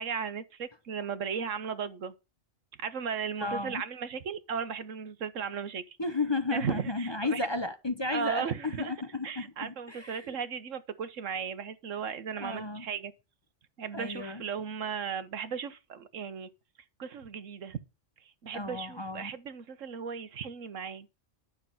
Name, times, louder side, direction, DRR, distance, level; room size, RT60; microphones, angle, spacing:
voice 1, 0.0-2.1 2.8-6.0 6.5-7.5 8.1-8.9 9.2-13.1 13.8-16.5 17.0-17.8 18.4-21.1, right 7 dB, 85° right, 1.5 m, -36 dB
voice 2, 3.4-3.8 6.0-10.4 12.4-12.9 13.9-14.4 18.5-19.3, left 3 dB, 25° left, 0.8 m, -33 dB
12.0 x 6.7 x 5.7 m
omnidirectional pair, 1.3 m